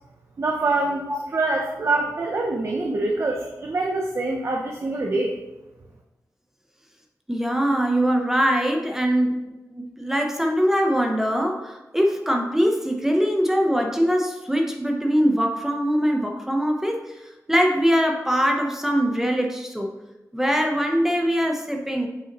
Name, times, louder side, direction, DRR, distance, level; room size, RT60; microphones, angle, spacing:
voice 1, 0.4-5.4, right 2 dB, 50° right, 1 dB, 0.7 m, -25 dB
voice 2, 7.3-9.4 9.7-19.9 20.3-22.1, equal, 5° right, 2 dB, 0.7 m, -22 dB
7.9 x 5.5 x 2.9 m, 1.0 s
wide cardioid pair, 120°, 6 cm